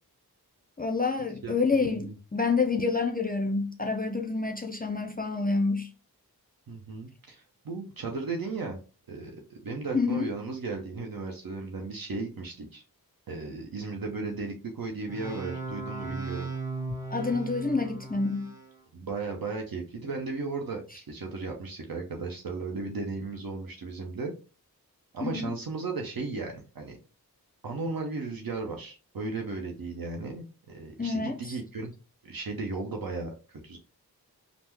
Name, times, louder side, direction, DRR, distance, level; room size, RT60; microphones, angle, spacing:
voice 1, 0.8-5.9 9.9-10.3 17.1-18.5 25.2-25.5 31.0-31.6, left 4 dB, 25° left, 0.4 m, -28 dB
voice 2, 1.4-2.1 6.7-8.8 9.1-12.8 13.3-16.5 18.9-24.3 25.1-27.0 27.6-31.9 32.2-33.8, right 3 dB, 65° right, 0.7 m, -35 dB
sound 1, 15.1-18.7, right 3 dB, 10° right, 1.5 m, -37 dB
3.4 x 2.0 x 2.9 m
cardioid pair, 45°, 39 cm